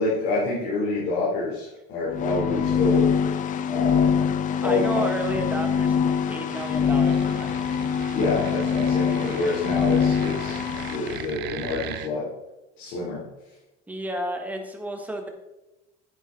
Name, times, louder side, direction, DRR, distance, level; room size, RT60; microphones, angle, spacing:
voice 1, 0.0-3.1 3.7-4.2 4.6-5.0 8.1-12.3 12.8-13.2, left 3 dB, 60° left, -6 dB, 3.4 m, -27 dB
sound 1, 2.1-11.2, left 7 dB, 40° left, 0.7 m, -24 dB
voice 2, 4.6-7.6 13.9-15.3, right 1 dB, 5° right, 3 dB, 1.4 m, -32 dB
sound 2, 6.4-12.1, right 11 dB, 55° right, 0.8 m, -39 dB
9.3 x 9.1 x 3.9 m, 0.97 s
cardioid pair, 145°, 21 cm